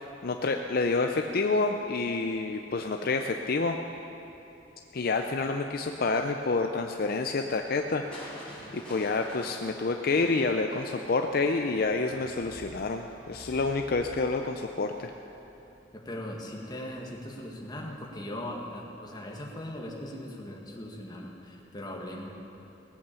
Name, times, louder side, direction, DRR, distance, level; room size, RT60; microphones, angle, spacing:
voice 1, 0.2-3.8 4.9-15.1, left 3 dB, 55° left, 5 dB, 0.5 m, -28 dB
Crushing, 8.1-16.1 17.6-18.1 18.6-18.7, equal, 5° left, 4.2 m, -49 dB
voice 2, 15.9-22.3, left 1 dB, 25° left, -1 dB, 1.7 m, -39 dB
18.5 x 8.2 x 6.9 m, 3.0 s
head